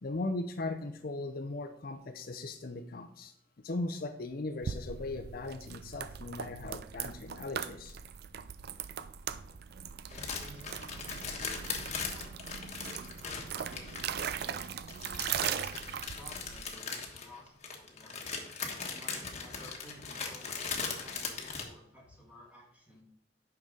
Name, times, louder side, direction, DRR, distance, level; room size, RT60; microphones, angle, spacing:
voice 1, 0.0-3.3 3.6-7.9, left 2 dB, 55° left, 7 dB, 0.6 m, -38 dB
sound 1, 4.6-16.7, right 8 dB, 60° right, 0.4 m, -39 dB
sound 2, 10.1-21.6, left 5 dB, 40° left, 1.3 m, -39 dB
voice 2, 10.1-12.3 12.7-14.1 14.4-18.2 18.8-23.0, left 1 dB, 5° right, -3 dB, 2.5 m, -55 dB
9.2 x 5.9 x 3.8 m, 0.76 s
head